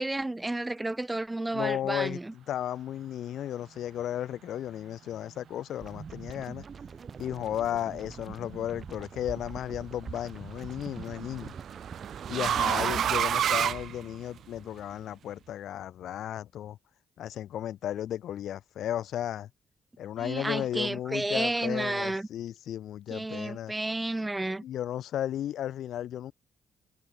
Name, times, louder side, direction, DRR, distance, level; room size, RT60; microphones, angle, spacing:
voice 1, 0.0-2.3 12.5-13.0 20.2-22.3 23.1-24.6, right 2 dB, 15° right, 0.8 m, -31 dB
voice 2, 1.5-6.7 7.2-11.6 12.3-16.8 17.2-19.5 20.0-23.7 24.6-26.3, left 11 dB, 75° left, 2.0 m, -34 dB
sound 1, 5.8-12.9, right 6 dB, 40° right, 6.2 m, -44 dB
sound 2, 8.7-9.2 10.6-14.6, right 9 dB, 65° right, 1.1 m, -29 dB
cardioid pair, 90°, 0 cm